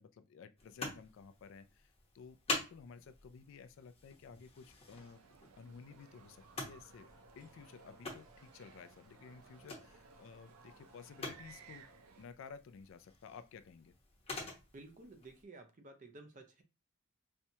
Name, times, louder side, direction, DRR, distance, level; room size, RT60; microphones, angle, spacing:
voice 1, 0.0-5.2 5.6-7.1 7.4-11.8 12.2-13.9, left 5 dB, 60° left, 0.3 m, -54 dB
sound 1, 0.6-15.4, left 2 dB, 30° left, 0.8 m, -47 dB
sound 2, 4.9-12.3, right 6 dB, 90° right, 0.5 m, -61 dB
sound 3, 6.0-12.1, right 1 dB, 70° right, 1.1 m, -65 dB
voice 2, 14.7-16.6, right 2 dB, 35° right, 0.5 m, -54 dB
4.3 x 2.2 x 2.7 m
head